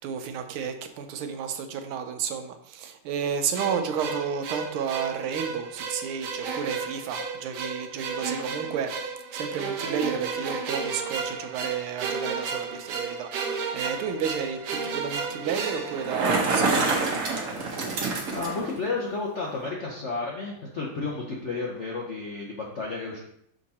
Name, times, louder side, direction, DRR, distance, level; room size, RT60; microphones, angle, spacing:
voice 1, 0.0-17.2, right 7 dB, 85° right, 7 dB, 1.6 m, -32 dB
sound 1, 3.5-16.8, right 5 dB, 70° right, 1.1 m, -33 dB
Bicycle, 15.9-18.7, right 3 dB, 50° right, 1.2 m, -26 dB
voice 2, 18.3-23.2, left 3 dB, 65° left, -2 dB, 0.7 m, -32 dB
6.0 x 3.7 x 4.1 m, 0.72 s
omnidirectional pair, 2.3 m